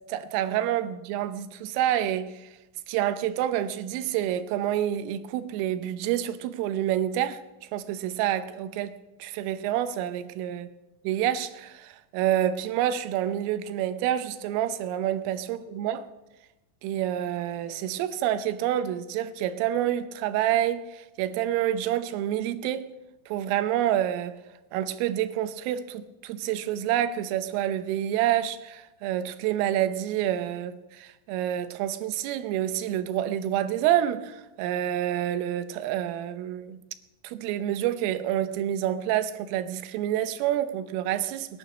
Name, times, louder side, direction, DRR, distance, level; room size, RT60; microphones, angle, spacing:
voice 1, 0.1-2.5 2.9-7.4 7.7-10.7 11.1-16.1 16.8-22.9 23.3-24.4 24.7-36.8 37.2-41.6, right 11 dB, 90° right, 3.5 m, -28 dB
20.0 x 11.5 x 6.2 m
omnidirectional pair, 5.7 m